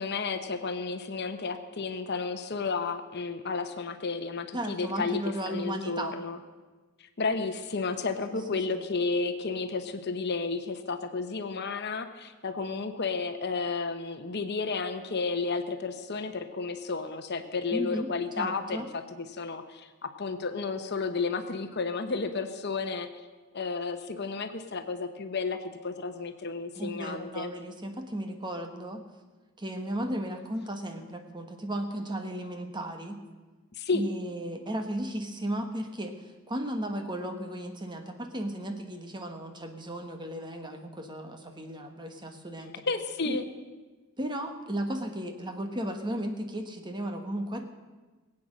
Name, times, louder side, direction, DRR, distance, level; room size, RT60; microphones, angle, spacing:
voice 1, 0.0-5.2 5.5-6.4 7.2-19.0 19.3-23.1 23.5-27.5 33.8-34.0 42.9-43.4, left 4 dB, 55° left, 8 dB, 1.0 m, -32 dB
voice 2, 4.5-6.1 8.7-8.8 17.7-18.1 18.4-18.9 26.7-29.0 29.6-33.2 33.9-42.8 43.2-43.4 44.2-47.6, right 1 dB, 20° right, 5 dB, 1.3 m, -35 dB
20.5 x 8.7 x 6.4 m, 1.3 s
head